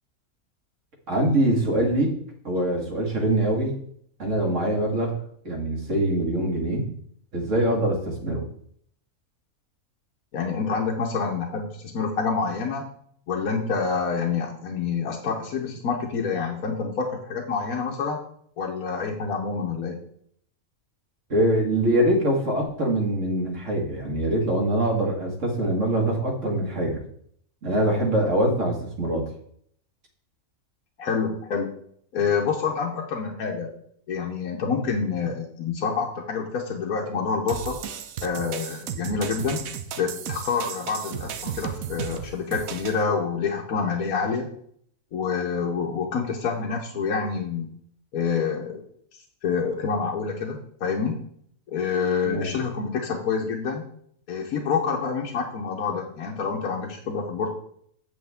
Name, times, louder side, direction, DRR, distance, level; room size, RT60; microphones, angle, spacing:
voice 1, 1.1-2.1 2.4-3.8 4.2-5.2 5.4-6.9 7.3-8.4 21.3-27.0 27.6-29.2 52.2-52.5, right 1 dB, 60° right, 0 dB, 2.0 m, -23 dB
voice 2, 10.3-12.8 13.3-18.2 18.6-20.0 31.0-31.7 32.1-33.7 34.1-37.8 38.2-39.6 40.0-44.5 45.1-47.7 48.1-48.8 49.4-51.2 51.7-53.8 54.3-57.5, left 5 dB, 80° left, 0 dB, 1.4 m, -27 dB
sound 1, 37.5-43.0, right 8 dB, 75° right, 1.1 m, -34 dB
8.0 x 7.1 x 3.5 m, 0.65 s
omnidirectional pair, 1.5 m